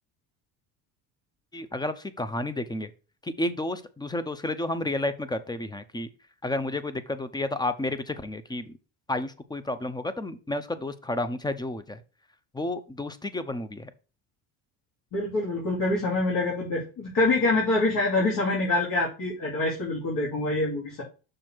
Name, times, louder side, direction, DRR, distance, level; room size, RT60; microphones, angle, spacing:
voice 1, 1.5-2.9 3.2-6.1 6.4-8.8 9.1-12.0 12.5-13.9, left 2 dB, 10° left, 12 dB, 0.7 m, -31 dB
voice 2, 15.1-21.0, left 2 dB, 55° left, -4 dB, 2.6 m, -25 dB
6.3 x 4.5 x 4.5 m, 0.33 s
cardioid pair, 105°, 40 cm